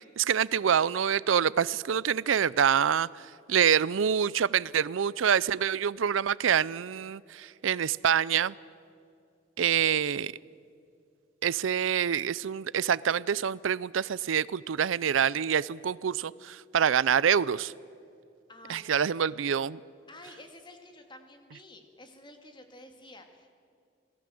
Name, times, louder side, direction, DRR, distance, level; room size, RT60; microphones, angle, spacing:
voice 1, 0.2-3.1 3.5-8.5 9.6-10.3 11.4-17.7 18.7-19.8, right 8 dB, 85° right, 21 dB, 0.5 m, -26 dB
voice 2, 18.5-18.8 20.1-23.5, left 2 dB, 25° left, 5 dB, 2.4 m, -50 dB
27.5 x 18.5 x 7.8 m, 2.4 s
head